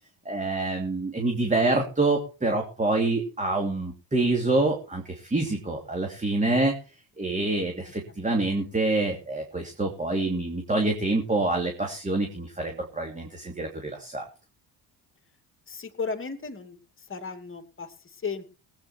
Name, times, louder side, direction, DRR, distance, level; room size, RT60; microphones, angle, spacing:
voice 1, 0.2-6.7 7.2-14.3, right 2 dB, 15° right, 2 dB, 2.9 m, -26 dB
voice 2, 15.7-16.8 17.1-18.4, left 5 dB, 30° left, 8 dB, 2.5 m, -35 dB
18.5 x 9.1 x 4.5 m, 0.35 s
cardioid pair, 90°, 44 cm